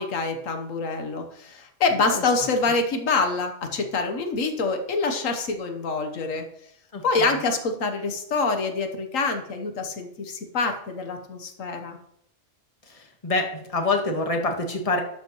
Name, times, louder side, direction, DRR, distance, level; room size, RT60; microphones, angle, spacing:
voice 1, 0.0-6.5 7.0-12.0, left 3 dB, 85° left, 6 dB, 1.5 m, -26 dB
voice 2, 6.9-7.4 12.9-15.0, left 2 dB, 30° left, 3 dB, 1.5 m, -26 dB
12.0 x 8.2 x 3.1 m, 0.72 s
omnidirectional pair, 1.3 m